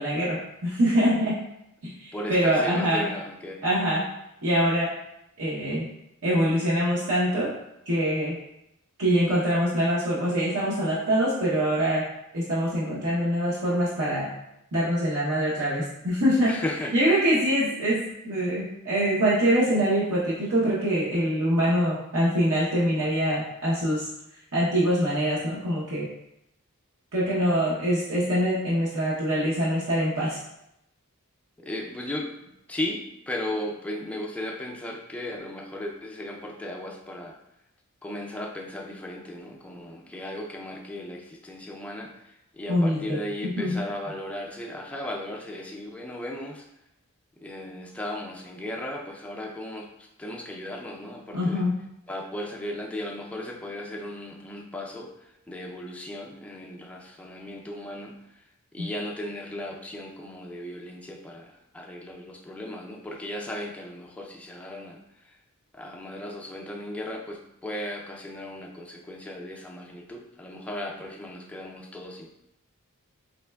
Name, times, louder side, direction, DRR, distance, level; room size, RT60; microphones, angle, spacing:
voice 1, 0.0-1.3 1.8-3.1 3.6-4.0 4.4-4.9 5.4-5.9 6.2-7.5 7.9-8.3 9.0-12.0 12.3-14.3 14.7-16.5 16.9-24.1 24.5-26.1 27.1-30.4 42.7-43.2 43.4-43.8 51.3-51.7 58.8-58.9, equal, 70° right, -8 dB, 0.8 m, -24 dB
voice 2, 2.1-3.6 16.4-16.9 31.6-37.4 38.0-46.6 47.4-49.9 50.2-51.6 52.1-55.1 55.5-58.1 58.7-65.0 65.7-72.3, left 1 dB, 5° left, -1 dB, 0.4 m, -36 dB
4.2 x 3.1 x 2.2 m, 0.84 s
head